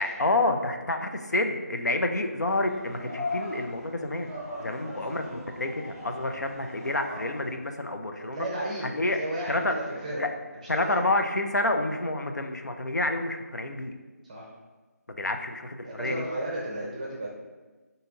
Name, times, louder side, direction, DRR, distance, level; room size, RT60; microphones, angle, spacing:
voice 1, 0.0-4.3 4.6-8.5 8.9-9.2 9.5-9.7 10.2-10.3 10.7-13.9 15.1-16.2, left 2 dB, 85° left, 5 dB, 0.5 m, -28 dB
sound 1, 2.5-7.5, left 2 dB, 20° left, 0.8 m, -39 dB
voice 2, 8.2-8.9 9.1-10.3 10.5-11.1 14.2-14.5 15.8-17.3, right 1 dB, 25° right, -3 dB, 0.6 m, -34 dB
5.0 x 2.7 x 2.8 m, 1.3 s
figure-of-eight pair, 160°, 9 cm